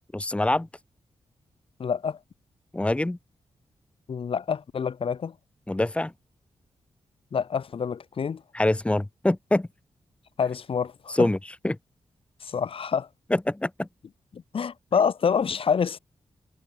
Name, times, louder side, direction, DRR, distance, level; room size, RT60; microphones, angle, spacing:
voice 1, 0.1-0.7 2.7-3.2 5.7-6.1 8.5-9.7 11.1-11.4 11.6-11.8 13.3-13.9, left 1 dB, 10° left, 2.1 m, -24 dB
voice 2, 1.8-2.2 4.1-5.3 7.3-8.4 10.4-11.3 12.4-13.1 14.3-16.0, left 6 dB, 60° left, 3.7 m, -27 dB
wide cardioid pair, 135°, 11 cm